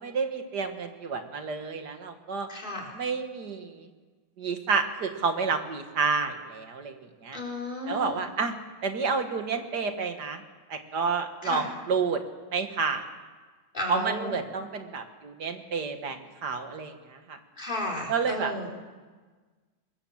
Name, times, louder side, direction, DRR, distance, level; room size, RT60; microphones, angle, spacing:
voice 1, 0.0-2.5 2.9-3.9 4.4-7.0 7.2-7.4 7.9-8.6 8.8-10.4 10.7-12.2 12.5-13.0 13.9-17.4 18.1-18.5, right 5 dB, 50° right, 7 dB, 2.0 m, -30 dB
voice 2, 2.5-2.9 7.3-8.2 11.4-11.7 13.7-14.4 17.6-18.7, left 1 dB, 20° left, 1 dB, 4.4 m, -33 dB
23.0 x 21.0 x 7.3 m, 1.4 s
omnidirectional pair, 2.3 m